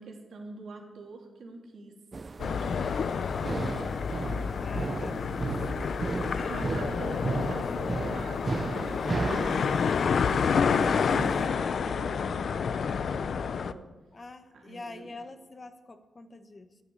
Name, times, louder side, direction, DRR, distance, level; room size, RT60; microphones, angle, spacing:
voice 1, 0.0-2.0 2.4-3.9 6.5-9.9 10.7-13.9 14.5-15.2, right 3 dB, 90° right, 1 dB, 2.9 m, -45 dB
sound 1, 2.1-11.5, right 4 dB, 35° right, 0.4 m, -35 dB
sound 2, 2.4-13.7, left 6 dB, 65° left, 0.6 m, -29 dB
voice 2, 4.6-5.5 14.1-16.8, left 3 dB, 30° left, 9 dB, 1.1 m, -45 dB
13.0 x 9.6 x 10.0 m, 1.3 s
wide cardioid pair, 135°, 0 cm